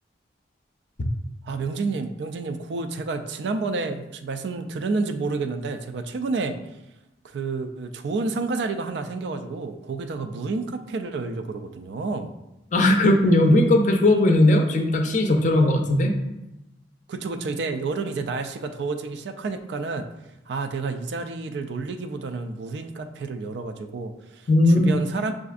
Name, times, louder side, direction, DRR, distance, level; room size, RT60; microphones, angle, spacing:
voice 1, 1.4-6.6 7.2-12.3 17.1-20.1 20.5-24.5 24.7-25.3, right 3 dB, 70° right, 7 dB, 0.4 m, -30 dB
voice 2, 12.7-16.1 24.5-24.9, left 1 dB, 45° left, 3 dB, 0.5 m, -18 dB
6.6 x 2.5 x 2.4 m, 0.96 s
head